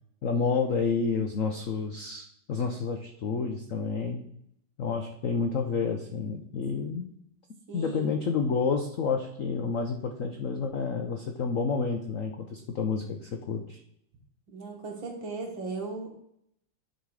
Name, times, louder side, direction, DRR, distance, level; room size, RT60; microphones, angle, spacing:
voice 1, 0.2-4.2 4.8-7.1 7.7-13.8, left 5 dB, 90° left, 4 dB, 0.7 m, -29 dB
voice 2, 7.7-8.2 14.5-16.1, right 3 dB, 60° right, 2 dB, 2.2 m, -37 dB
10.5 x 4.2 x 4.8 m, 0.73 s
omnidirectional pair, 2.4 m